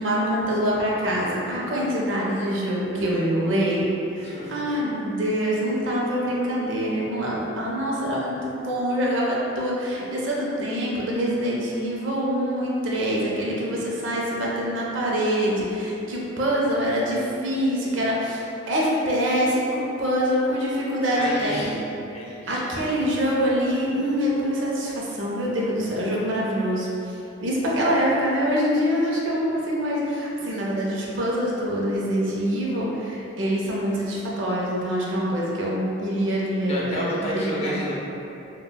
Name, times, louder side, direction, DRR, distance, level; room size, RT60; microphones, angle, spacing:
voice 1, 0.0-3.9 4.1-21.7 22.5-26.9 27.4-37.7, equal, 65° right, -4 dB, 0.5 m, -25 dB
voice 2, 4.2-4.7 21.1-21.8 22.1-22.6 36.6-37.9, equal, 30° left, -6 dB, 0.4 m, -30 dB
3.4 x 2.2 x 2.2 m, 2.9 s
head